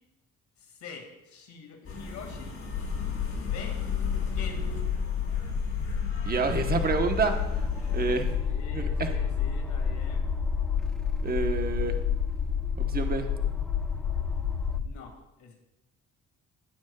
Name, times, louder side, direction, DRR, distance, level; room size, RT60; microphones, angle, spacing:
voice 1, 0.6-2.6 3.3-3.8 4.3-4.7 8.4-10.3 14.7-15.5, left 5 dB, 70° left, 2 dB, 2.1 m, -45 dB
sound 1, 1.8-8.3, left 2 dB, 45° left, 3.5 m, -41 dB
sound 2, 2.7-14.8, left 7 dB, 90° left, 1.6 m, -29 dB
voice 2, 6.2-7.7 7.9-8.3 8.7-9.1 11.2-12.0 12.8-13.3, right 4 dB, 30° right, 5 dB, 1.1 m, -28 dB
sound 3, 6.8-14.8, equal, ahead, 0.6 m, -45 dB
16.0 x 8.1 x 2.3 m, 0.91 s
cardioid pair, 90°, 30 cm